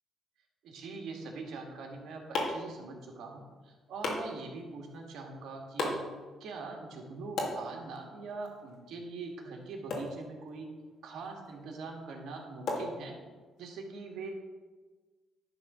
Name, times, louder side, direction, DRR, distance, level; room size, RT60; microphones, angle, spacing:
voice 1, 0.6-6.0 6.4-10.7 11.0-13.2 13.6-14.3, right 3 dB, 75° right, 1 dB, 1.8 m, -43 dB
sound 1, 1.7-13.6, left 2 dB, 70° left, 2.0 m, -41 dB
11.0 x 4.0 x 6.1 m, 1.3 s
cardioid pair, 90°, 0 cm